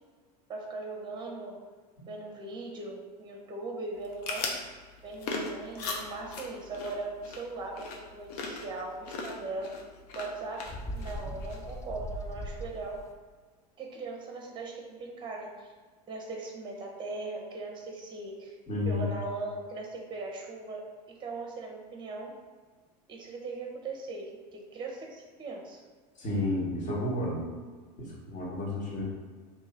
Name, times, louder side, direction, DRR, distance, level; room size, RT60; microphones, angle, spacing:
voice 1, 0.5-1.6 2.1-4.6 5.0-9.8 10.1-10.7 10.9-13.0 13.8-15.7 16.1-18.6 18.8-22.3 23.1-25.8, right 3 dB, 20° right, 1 dB, 0.8 m, -39 dB
sound 1, 3.9-11.8, left 3 dB, 65° left, 0.7 m, -40 dB
Bird, 10.7-13.1, equal, 15° left, 0.3 m, -39 dB
voice 2, 18.7-19.1 26.2-27.4 28.0-29.0, left 2 dB, 40° left, -4 dB, 1.4 m, -31 dB
3.0 x 2.8 x 3.8 m, 1.5 s
hypercardioid pair, 85°, 21 cm